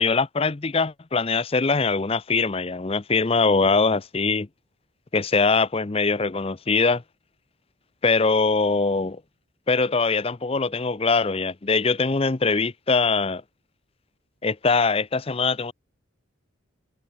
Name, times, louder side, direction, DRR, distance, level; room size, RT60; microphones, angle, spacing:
voice 1, 0.0-4.5 5.1-7.0 8.0-9.2 9.7-13.4 14.4-15.7, left 4 dB, 25° left, 0.6 m, -22 dB
head